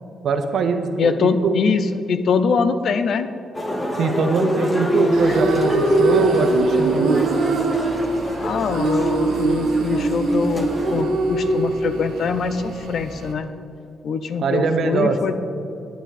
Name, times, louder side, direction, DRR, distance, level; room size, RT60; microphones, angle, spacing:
voice 1, 0.2-1.5 4.0-7.2 14.4-15.2, right 4 dB, 70° right, 6 dB, 0.9 m, -22 dB
voice 2, 1.0-3.3 8.4-13.5 14.0-15.3, left 5 dB, 65° left, 10 dB, 0.6 m, -23 dB
sound 1, 3.5-11.0, equal, 20° left, 1.5 m, -26 dB
sound 2, 5.1-13.3, right 2 dB, 90° right, 1.1 m, -22 dB
9.3 x 9.1 x 4.2 m, 2.7 s
cardioid pair, 70°, 0 cm